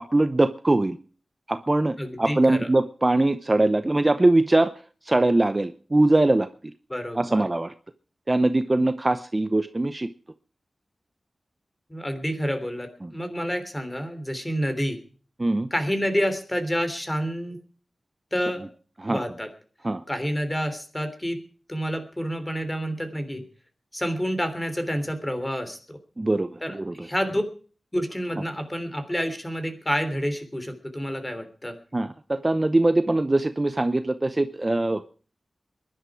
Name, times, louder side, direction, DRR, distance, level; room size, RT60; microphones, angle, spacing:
voice 1, 0.1-1.0 1.5-4.7 5.1-6.5 7.1-7.7 8.3-10.1 13.0-13.1 15.4-15.7 19.0-19.2 19.8-20.0 26.2-27.1 31.9-35.1, right 2 dB, 25° right, 11 dB, 0.7 m, -22 dB
voice 2, 2.0-2.7 6.9-7.4 11.9-15.0 15.7-17.6 18.3-18.7 19.1-19.5 20.1-21.4 21.7-23.4 23.9-26.0 26.6-27.4 27.9-31.7, equal, 15° left, 8 dB, 3.3 m, -28 dB
22.0 x 11.5 x 4.8 m, 0.42 s
wide cardioid pair, 85°, 0 cm